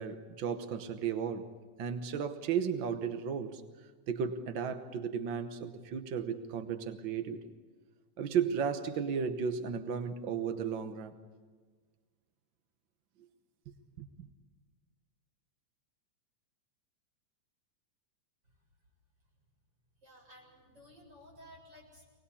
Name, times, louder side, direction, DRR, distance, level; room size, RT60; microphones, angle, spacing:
voice 1, 0.0-1.5 1.8-3.6 4.1-7.4 8.2-11.1 14.0-14.3, right 7 dB, 70° right, 8 dB, 1.1 m, -34 dB
voice 2, 20.0-22.0, equal, 35° right, -1 dB, 8.2 m, -55 dB
26.0 x 19.5 x 8.4 m, 1.5 s
omnidirectional pair, 3.5 m